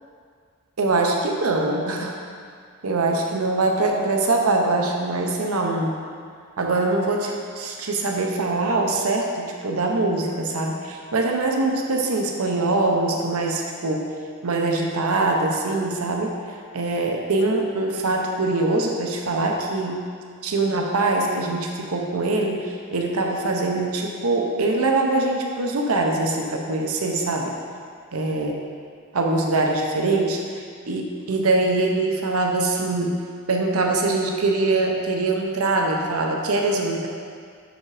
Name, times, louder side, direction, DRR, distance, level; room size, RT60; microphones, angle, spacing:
voice 1, 0.8-2.1 2.8-6.0 6.6-14.1 14.4-16.3 16.7-20.0 20.4-27.5 28.1-28.5 29.1-30.4 30.9-33.2 33.5-37.1, right 2 dB, 90° right, 1 dB, 0.8 m, -23 dB
5.9 x 5.2 x 4.8 m, 2.1 s
head